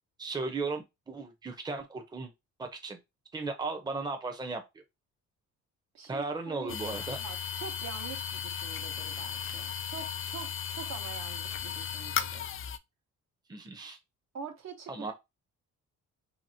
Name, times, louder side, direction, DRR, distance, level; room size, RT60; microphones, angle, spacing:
voice 1, 0.2-2.3 2.6-3.0 3.3-4.8 6.1-7.2 13.5-14.0 14.9-15.1, right 3 dB, 15° right, 0.7 m, -36 dB
voice 2, 5.9-12.5 14.3-15.1, right 7 dB, 60° right, 1.1 m, -45 dB
sound 1, 6.7-12.8, left 8 dB, 45° left, 0.4 m, -36 dB
2.9 x 2.8 x 2.7 m
cardioid pair, 90°, 30 cm